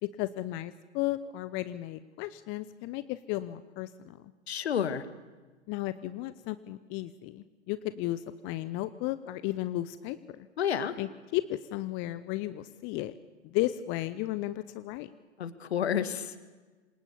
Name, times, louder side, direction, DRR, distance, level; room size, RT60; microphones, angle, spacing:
voice 1, 0.0-4.3 5.7-10.5 11.0-13.1 13.4-15.1, left 15 dB, 35° left, 14 dB, 1.0 m, -34 dB
voice 2, 4.5-5.0 10.6-11.0 15.4-16.4, left 8 dB, 65° left, 12 dB, 2.2 m, -30 dB
27.5 x 27.0 x 7.1 m, 1.3 s
figure-of-eight pair, 95°, 34 cm